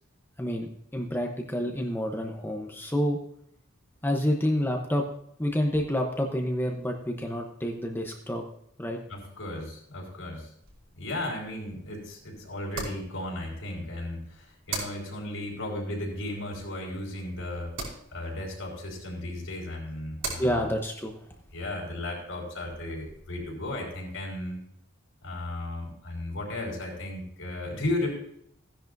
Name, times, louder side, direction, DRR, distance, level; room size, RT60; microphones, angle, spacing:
voice 1, 0.4-3.2 4.0-5.0 5.4-8.4 8.8-9.0 20.4-21.1, equal, 10° left, 2 dB, 0.9 m, -28 dB
voice 2, 9.1-10.5 10.9-20.7 21.5-24.6 25.2-28.1, left 1 dB, 80° left, 0 dB, 4.6 m, -35 dB
sound 1, 10.6-23.5, right 3 dB, 80° right, 5.4 m, -44 dB
16.0 x 10.5 x 2.7 m, 0.69 s
head